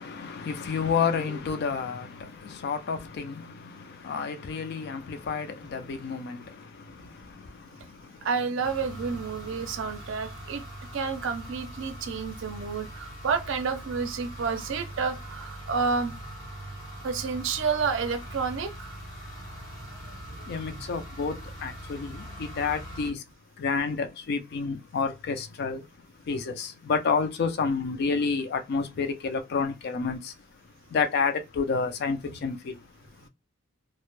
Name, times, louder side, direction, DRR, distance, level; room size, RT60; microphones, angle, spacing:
voice 1, 0.0-8.3 20.5-23.2 23.6-25.9 26.2-30.5 30.9-32.9, left 5 dB, 50° left, 0.3 m, -30 dB
voice 2, 8.2-10.6 10.9-16.2 17.0-18.9 20.3-20.4 22.1-22.2 32.2-32.4, right 5 dB, 60° right, 0.4 m, -30 dB
sound 1, 8.6-23.1, right 1 dB, 90° left, 0.9 m, -42 dB
2.1 x 2.0 x 3.0 m
head